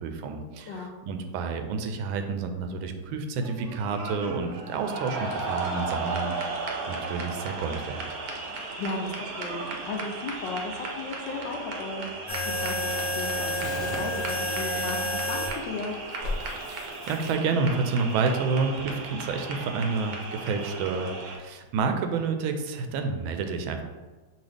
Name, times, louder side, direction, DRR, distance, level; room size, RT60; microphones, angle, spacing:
voice 1, 0.0-6.6 6.9-8.1 16.7-23.8, right 4 dB, 85° right, 6 dB, 1.4 m, -29 dB
sound 1, 3.4-21.4, right 3 dB, 65° right, 1.0 m, -35 dB
voice 2, 8.8-15.9, left 3 dB, 75° left, 2 dB, 1.2 m, -35 dB
sound 2, 12.3-15.5 16.2-17.3, left 1 dB, 35° left, 0.6 m, -30 dB
5.4 x 2.8 x 3.3 m, 1.3 s
omnidirectional pair, 2.1 m